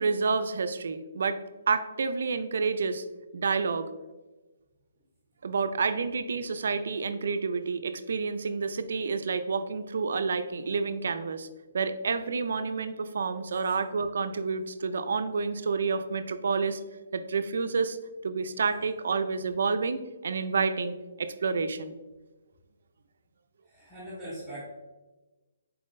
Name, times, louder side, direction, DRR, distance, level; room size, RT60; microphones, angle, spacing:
voice 1, 0.0-1.4 1.7-3.0 3.3-3.9 5.4-11.5 11.7-16.8 17.1-18.0 18.2-22.0, right 4 dB, 65° right, 10 dB, 0.3 m, -29 dB
voice 2, 23.7-24.6, right 1 dB, 5° right, -12 dB, 0.9 m, -41 dB
4.4 x 3.6 x 2.5 m, 1.2 s
hypercardioid pair, 160°, 0 cm